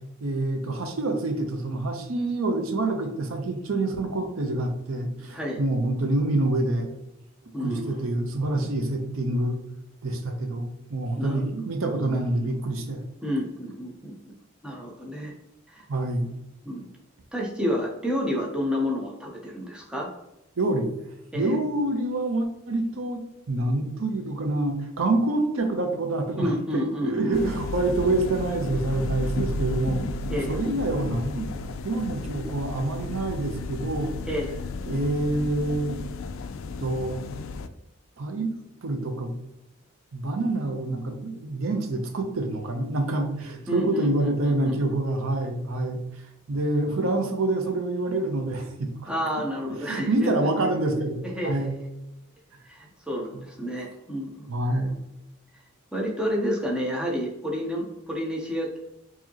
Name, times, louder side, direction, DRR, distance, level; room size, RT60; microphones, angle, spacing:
voice 1, 0.2-6.9 7.6-9.6 10.0-13.0 15.9-16.3 20.6-20.9 21.3-23.2 23.5-30.1 30.5-34.1 34.9-36.0 36.8-37.2 38.2-38.5 38.8-39.3 40.1-46.0 46.5-49.1 49.7-51.7 54.5-55.0, right 2 dB, 80° right, 5 dB, 0.6 m, -27 dB
voice 2, 7.5-8.0 11.2-11.4 13.2-14.3 14.6-15.3 15.7-15.8 16.6-16.9 17.3-20.1 21.3-21.6 26.4-27.3 30.3-30.5 34.3-34.6 43.7-45.0 49.1-50.5 51.2-51.8 52.6-54.5 55.9-58.8, equal, 5° right, -2 dB, 0.6 m, -30 dB
sound 1, 27.3-37.7, left 3 dB, 75° left, 0.3 m, -33 dB
4.7 x 2.8 x 2.8 m, 0.89 s
head